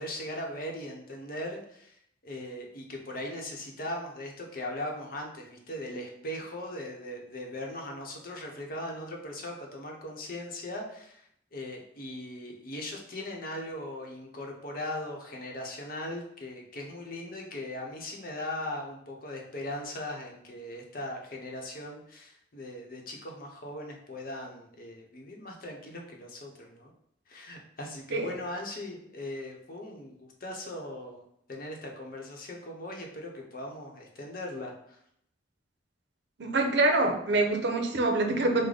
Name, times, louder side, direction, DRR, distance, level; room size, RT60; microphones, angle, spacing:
voice 1, 0.0-11.2 11.5-26.9 27.3-35.0, left 1 dB, 50° left, 1 dB, 0.8 m, -39 dB
voice 2, 36.4-38.7, right 2 dB, 70° right, 4 dB, 0.7 m, -25 dB
4.9 x 2.1 x 3.9 m, 0.72 s
head